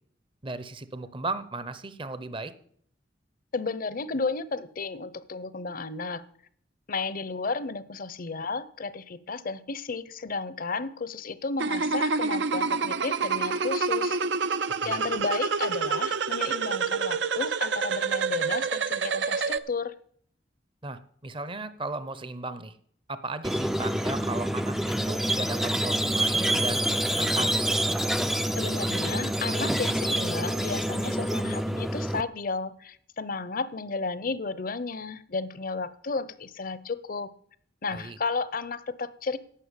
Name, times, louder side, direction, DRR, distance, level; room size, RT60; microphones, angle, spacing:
voice 1, 0.4-2.5 14.8-15.0 20.8-22.8 23.1-27.7 37.9-38.2, right 3 dB, 30° right, 13 dB, 0.7 m, -36 dB
voice 2, 3.5-6.3 6.9-14.2 14.8-19.9 28.6-37.3 37.8-39.4, left 4 dB, 50° left, 15 dB, 0.7 m, -33 dB
sound 1, 11.6-19.6, right 5 dB, 75° right, 0.6 m, -27 dB
Squeak, 23.4-32.2, right 1 dB, ahead, 0.4 m, -27 dB
11.5 x 7.5 x 8.3 m, 0.63 s
head